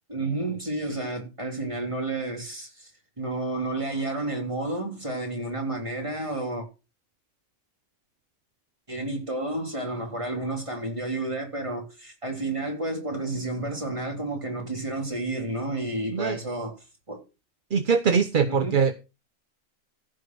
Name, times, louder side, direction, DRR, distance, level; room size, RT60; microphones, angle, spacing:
voice 1, 0.1-2.9 3.2-6.7 8.9-16.8 17.1-17.2 18.5-18.8, right 2 dB, 25° right, 3.5 m, -31 dB
voice 2, 17.7-18.9, right 6 dB, 45° right, 0.8 m, -22 dB
15.0 x 5.1 x 6.2 m
omnidirectional pair, 1.4 m